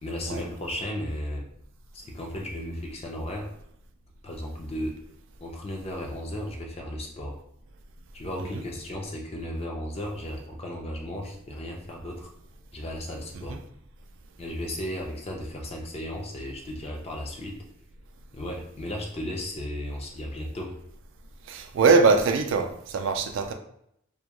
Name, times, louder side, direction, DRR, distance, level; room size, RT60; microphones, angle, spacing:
voice 1, 0.0-1.4 1.9-3.5 4.2-5.0 5.4-7.4 8.1-12.3 12.7-13.6 14.4-17.6 18.3-20.7, left 1 dB, 30° left, 0 dB, 0.5 m, -35 dB
voice 2, 21.5-23.5, right 4 dB, 65° right, 5 dB, 0.3 m, -22 dB
2.2 x 2.2 x 2.9 m, 0.74 s
head